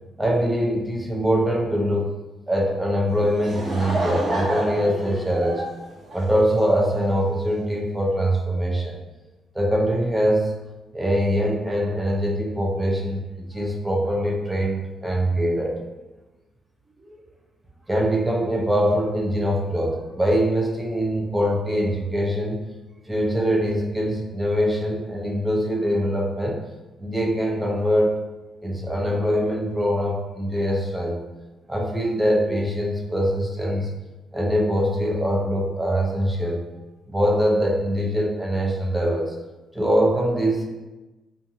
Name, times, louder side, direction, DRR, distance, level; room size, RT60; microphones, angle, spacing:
voice 1, 0.2-2.1 2.5-5.7 6.1-9.0 9.5-10.5 10.9-15.8 17.1-17.2 17.9-22.6 23.1-26.6 27.0-28.1 28.6-31.2 31.7-33.9 34.3-36.6 37.1-39.3 39.7-40.6, equal, 10° right, -2 dB, 0.6 m, -23 dB
Laughter / Crowd, 3.1-6.9, right 1 dB, 50° right, 0.8 m, -29 dB
2.6 x 2.5 x 2.5 m, 1.1 s
cardioid pair, 90°, 0 cm